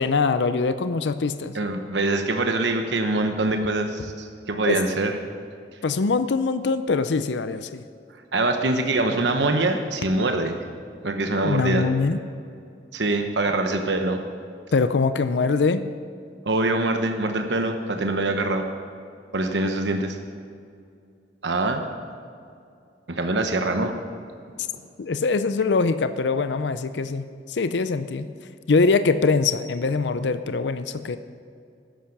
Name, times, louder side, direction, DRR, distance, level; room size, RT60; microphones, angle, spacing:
voice 1, 0.0-1.6 4.7-4.8 5.8-7.8 11.4-12.2 14.7-15.8 25.0-28.3 28.7-31.2, left 4 dB, 80° left, 11 dB, 0.5 m, -23 dB
voice 2, 1.5-5.1 8.3-10.6 11.0-11.8 12.9-14.2 16.5-18.6 19.3-20.2 21.4-21.8 23.1-24.0, right 2 dB, 80° right, 5 dB, 1.0 m, -24 dB
13.0 x 10.0 x 5.9 m, 2.4 s
head